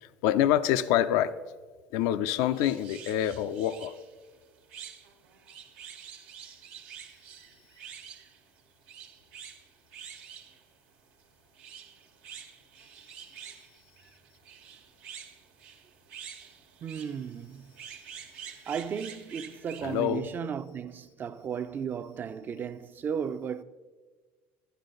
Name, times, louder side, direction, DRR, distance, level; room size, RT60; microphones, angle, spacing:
voice 1, 0.0-1.3 1.9-3.9 19.8-20.3, left 11 dB, 75° left, 0.4 m, -26 dB
sound 1, 2.2-20.0, right 8 dB, 90° right, 1.4 m, -48 dB
voice 2, 16.8-17.7 18.7-23.6, right 7 dB, 35° right, 0.5 m, -35 dB
12.0 x 11.0 x 3.9 m
supercardioid pair, 110°, 6 cm